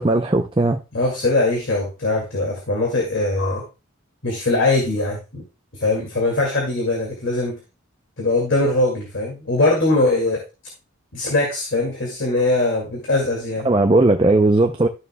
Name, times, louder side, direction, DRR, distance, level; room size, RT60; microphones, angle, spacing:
voice 1, 0.0-0.8 13.6-14.9, right 2 dB, 25° right, 0.5 m, -17 dB
voice 2, 0.9-3.6 4.2-5.4 5.8-7.6 8.2-10.4 11.1-13.7, left 2 dB, 60° left, 2.2 m, -21 dB
13.0 x 6.8 x 2.2 m
head